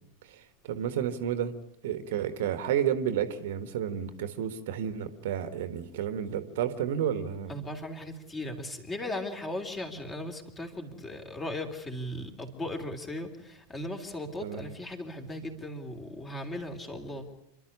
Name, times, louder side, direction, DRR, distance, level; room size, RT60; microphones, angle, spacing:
voice 1, 0.2-1.5 1.8-7.6 14.4-14.7, right 9 dB, 55° right, 11 dB, 1.5 m, -31 dB
voice 2, 7.5-17.3, left 1 dB, 15° left, 5 dB, 3.3 m, -37 dB
27.5 x 12.5 x 9.8 m, 0.87 s
figure-of-eight pair, 90°, 0 cm